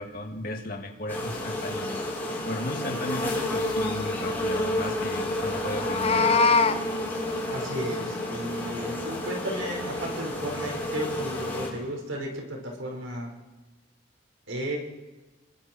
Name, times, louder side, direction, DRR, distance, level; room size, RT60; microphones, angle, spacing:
voice 1, 0.0-2.0 2.4-6.4, left 1 dB, 45° left, 2 dB, 2.6 m, -35 dB
sound 1, 1.1-11.7, left 1 dB, 10° left, 5.9 m, -30 dB
Meow, 5.7-6.8, left 4 dB, 30° left, 0.8 m, -22 dB
voice 2, 7.5-13.3 14.5-14.8, right 1 dB, 85° right, 0 dB, 5.3 m, -34 dB
30.0 x 22.0 x 4.6 m, 1.2 s
head